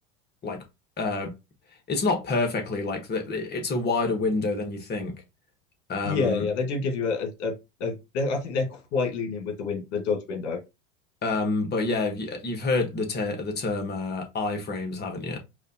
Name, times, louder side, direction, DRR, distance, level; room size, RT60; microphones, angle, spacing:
voice 1, 1.0-1.3 1.9-5.2 5.9-6.4 11.2-15.4, left 3 dB, 30° left, 1.3 m, -28 dB
voice 2, 6.0-7.5 7.8-10.6, left 4 dB, 65° left, 1.5 m, -28 dB
4.8 x 2.5 x 2.8 m
hypercardioid pair, 100°, 35 cm